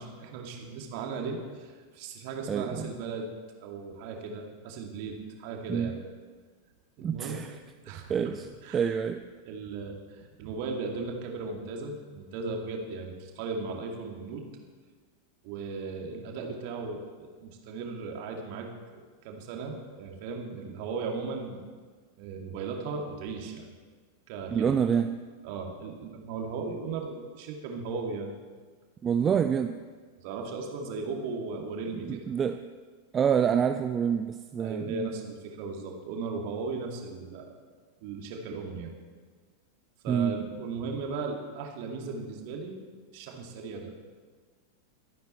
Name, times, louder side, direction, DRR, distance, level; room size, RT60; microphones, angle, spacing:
voice 1, 0.0-3.3 3.6-6.0 7.0-7.4 7.8-8.3 8.6-9.0 9.4-14.4 15.4-18.7 19.2-21.6 22.2-23.7 24.3-24.7 25.4-28.3 29.2-29.4 30.2-32.2 33.4-33.5 34.6-37.5 38.0-38.9 40.0-42.8 43.1-43.9, right 4 dB, 45° right, 2 dB, 2.4 m, -37 dB
voice 2, 2.5-2.9 5.7-5.9 7.0-7.6 8.1-8.5 8.7-9.2 24.5-25.1 29.0-29.8 31.9-32.6 33.1-35.1 40.1-40.4, right 7 dB, 25° right, 8 dB, 0.5 m, -27 dB
23.0 x 9.4 x 4.4 m, 1.5 s
figure-of-eight pair, 90°, 0 cm